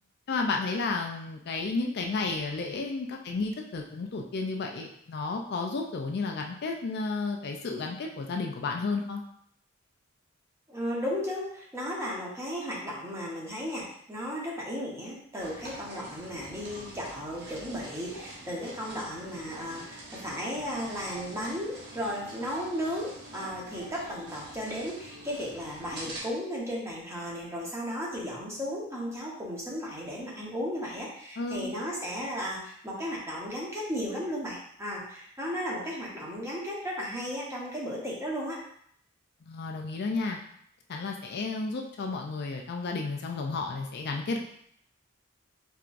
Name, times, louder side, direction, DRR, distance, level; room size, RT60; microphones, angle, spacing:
voice 1, 0.3-9.2 31.4-31.7 39.4-40.4 40.9-44.4, left 3 dB, 50° left, 2 dB, 0.4 m, -32 dB
voice 2, 10.7-38.6, equal, 15° right, -5 dB, 1.0 m, -35 dB
sound 1, 15.4-26.2, right 1 dB, 55° right, 1.0 m, -45 dB
4.5 x 3.6 x 2.5 m, 0.68 s
head